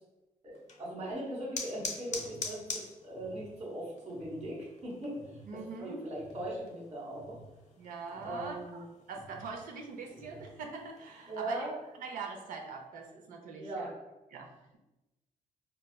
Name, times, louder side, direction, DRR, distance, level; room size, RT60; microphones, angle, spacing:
voice 1, 0.4-5.2 5.5-7.4 8.2-8.8 11.3-11.7 13.5-13.9, right 1 dB, 55° right, -5 dB, 1.2 m, -39 dB
sound 1, 0.5-11.7, left 4 dB, 60° left, 0.6 m, -46 dB
sound 2, 2.1-2.5 3.1-3.5 4.1-4.5 5.1-5.5 6.1-6.5 7.1-7.5 8.1-8.5 9.1-9.5 10.1-10.5, right 2 dB, 35° right, 0.8 m, -53 dB
voice 2, 5.4-6.1 7.8-11.7 12.0-13.9 14.3-14.5, right 4 dB, 85° right, 2 dB, 0.6 m, -43 dB
4.2 x 2.3 x 2.2 m, 1.0 s
cardioid pair, 95°, 14 cm